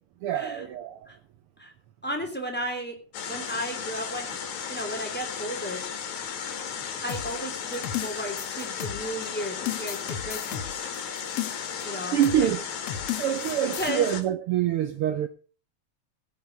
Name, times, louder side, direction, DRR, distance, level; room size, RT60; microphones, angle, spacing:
voice 1, 0.2-1.1 12.1-12.7 13.2-15.3, right 11 dB, 80° right, 1.3 m, -26 dB
voice 2, 2.0-2.9 3.3-4.3 4.7-5.8 7.0-10.9 11.8-12.5 13.8-14.1, equal, 5° left, 2.7 m, -34 dB
sound 1, 3.1-14.2, left 7 dB, 85° left, 3.1 m, -35 dB
sound 2, 7.1-9.2 9.7-11.8 12.2-12.5 12.9-13.9, left 11 dB, 65° left, 1.8 m, -34 dB
16.5 x 6.8 x 6.3 m
omnidirectional pair, 3.3 m